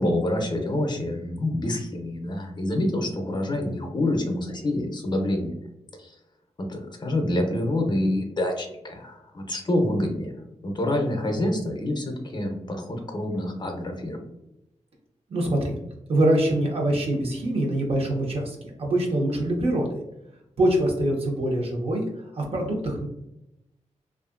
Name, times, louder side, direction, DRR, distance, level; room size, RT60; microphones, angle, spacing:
voice 1, 0.0-5.6 6.0-6.1 6.6-14.2, left 1 dB, 35° left, 3 dB, 0.6 m, -27 dB
voice 2, 15.3-15.7 16.1-20.0 20.6-23.1, right 1 dB, 55° right, -1 dB, 0.8 m, -24 dB
2.6 x 2.4 x 2.4 m, 0.87 s
cardioid pair, 85°, 12 cm